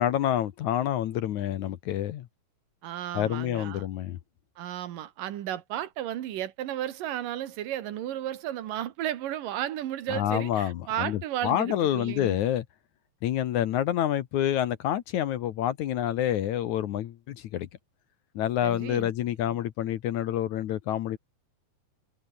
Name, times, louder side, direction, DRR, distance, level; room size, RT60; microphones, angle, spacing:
voice 1, 0.0-2.3 3.1-4.2 10.1-12.7 13.2-17.7 18.4-21.2, left 11 dB, 65° left, 2.1 m, -28 dB
voice 2, 2.8-3.9 4.6-12.4 18.6-19.1 19.5-19.6, right 12 dB, 70° right, 3.0 m, -34 dB
omnidirectional pair, 4.2 m